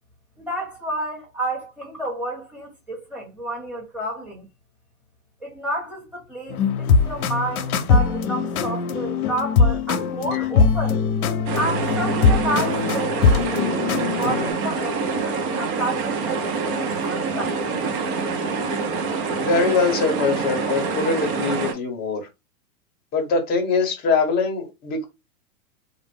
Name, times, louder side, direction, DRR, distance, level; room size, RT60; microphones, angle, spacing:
voice 1, 0.4-4.5 5.4-11.0 11.5-13.3 14.0-17.9, right 1 dB, 5° right, 1.1 m, -30 dB
sound 1, 6.5-14.5, left 5 dB, 85° left, 0.7 m, -21 dB
sound 2, 11.5-21.7, right 4 dB, 40° right, 0.7 m, -26 dB
voice 2, 19.4-22.3 23.1-25.1, left 4 dB, 20° left, 0.8 m, -22 dB
2.4 x 2.0 x 3.4 m
hypercardioid pair, 135°, 42 cm